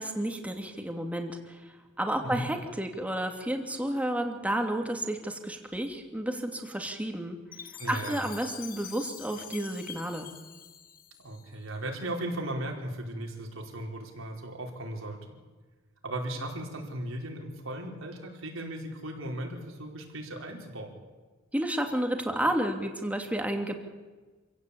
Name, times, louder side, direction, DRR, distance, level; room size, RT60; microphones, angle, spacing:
voice 1, 0.0-7.4 7.9-10.3 21.5-23.7, right 1 dB, 5° right, 4 dB, 2.6 m, -31 dB
Chime, 7.5-11.8, left 9 dB, 45° left, 1.4 m, -46 dB
voice 2, 7.8-8.2 11.2-15.4 16.0-20.9, right 1 dB, 80° right, 1 dB, 4.8 m, -37 dB
27.0 x 16.5 x 8.6 m, 1.3 s
head